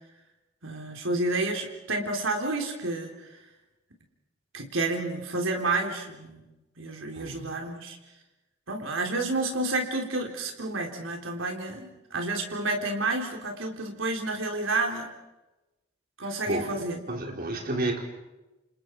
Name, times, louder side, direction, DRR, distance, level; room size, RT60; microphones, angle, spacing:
voice 1, 0.6-3.4 4.5-6.4 6.8-8.0 8.7-15.1 16.2-17.0, right 2 dB, 85° right, 4.0 m, -30 dB
voice 2, 7.1-7.6 16.5-16.7 17.1-18.0, right 2 dB, 50° right, 4.2 m, -31 dB
29.0 x 28.0 x 4.8 m
head